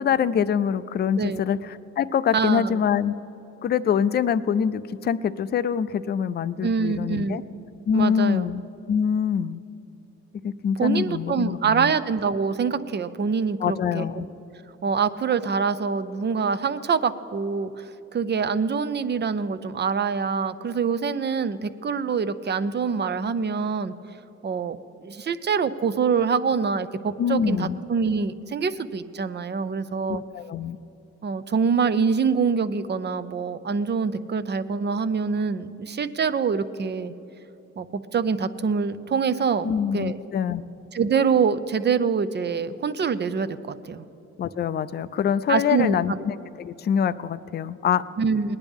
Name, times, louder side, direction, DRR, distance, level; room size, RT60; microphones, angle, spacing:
voice 1, 0.0-3.1 3.6-7.4 7.9-8.6 8.9-9.6 10.4-11.9 13.6-14.3 27.2-27.8 30.1-30.8 39.6-40.6 44.4-48.0, left 7 dB, 35° left, 13 dB, 0.4 m, -24 dB
voice 2, 2.3-2.8 6.6-7.4 7.9-8.5 10.8-14.2 14.8-23.9 24.4-30.2 31.2-37.1 37.8-37.9 38.1-40.2 40.9-43.6 43.8-44.0 45.5-46.2 48.2-48.6, right 5 dB, 35° right, 13 dB, 0.5 m, -25 dB
19.0 x 10.5 x 3.6 m, 2.9 s
cardioid pair, 90°, 30 cm